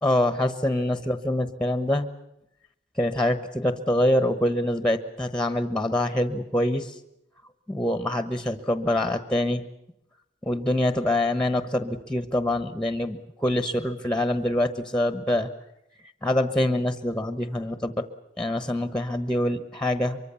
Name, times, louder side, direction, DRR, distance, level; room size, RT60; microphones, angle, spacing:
voice 1, 0.0-2.1 3.0-6.9 7.7-9.6 10.4-15.5 16.2-18.0 18.4-20.2, left 1 dB, 5° left, 11 dB, 1.1 m, -25 dB
24.0 x 23.5 x 7.1 m, 0.83 s
head